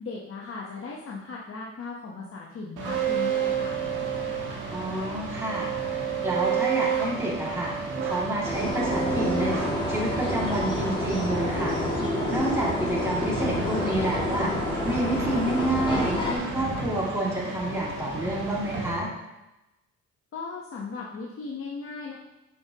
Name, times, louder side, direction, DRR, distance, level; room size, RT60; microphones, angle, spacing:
voice 1, 0.0-3.8 20.3-22.1, left 4 dB, 45° left, -3 dB, 1.0 m, -37 dB
sound 1, 2.8-18.9, right 5 dB, 85° right, 1.7 m, -31 dB
voice 2, 4.7-7.7 8.0-9.5 9.9-12.0 12.3-14.5 14.8-19.1, right 1 dB, 10° right, -5 dB, 2.3 m, -29 dB
sound 2, 8.4-16.4, left 1 dB, 15° left, 2.0 m, -29 dB
7.8 x 5.1 x 2.9 m, 0.98 s
cardioid pair, 90°, 30 cm